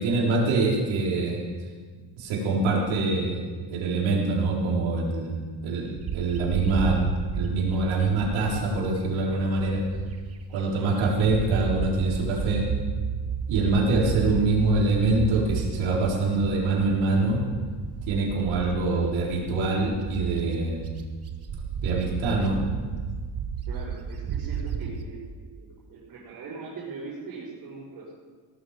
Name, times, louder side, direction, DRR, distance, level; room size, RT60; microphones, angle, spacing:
voice 1, 0.0-1.4 2.2-3.4 3.7-5.4 5.6-7.0 7.4-9.8 10.5-12.7 13.5-17.4 18.1-20.9 21.8-22.6, right 3 dB, 90° right, -3 dB, 4.4 m, -24 dB
Bird, 6.0-10.4 10.8-25.0, right 6 dB, 35° right, 1.1 m, -33 dB
voice 2, 23.7-28.1, right 4 dB, 50° right, -12 dB, 5.5 m, -40 dB
18.0 x 12.5 x 5.2 m, 1.5 s
cardioid pair, 170°, 45 cm